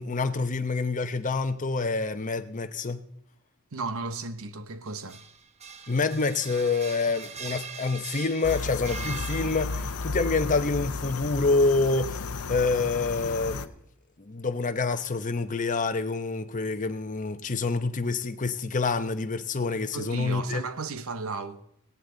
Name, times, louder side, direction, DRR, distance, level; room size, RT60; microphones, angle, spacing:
voice 1, 0.0-3.0 5.9-12.2 12.5-13.7 14.3-20.6, left 3 dB, 35° left, 0.9 m, -27 dB
voice 2, 3.7-5.2 19.9-21.6, right 3 dB, 70° right, 1.0 m, -34 dB
sound 1, 4.9-10.0, right 5 dB, 30° right, 0.9 m, -41 dB
sound 2, 8.4-13.7, left 4 dB, 90° left, 0.8 m, -33 dB
18.0 x 17.5 x 3.9 m
head